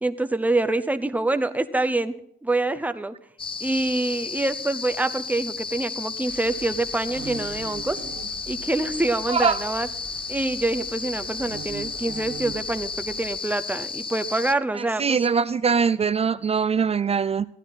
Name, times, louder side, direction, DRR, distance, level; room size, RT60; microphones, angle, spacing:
voice 1, 0.0-2.1 2.4-3.1 3.6-8.0 8.5-9.9 10.3-15.2, right 2 dB, 10° right, 0.8 m, -26 dB
sound 1, 3.4-14.5, left 5 dB, 25° left, 0.6 m, -33 dB
sound 2, 6.2-13.4, right 8 dB, 90° right, 1.9 m, -41 dB
voice 2, 9.3-9.6 14.7-17.5, right 6 dB, 30° right, 0.4 m, -22 dB
15.5 x 11.0 x 4.2 m
cardioid pair, 90°, 20 cm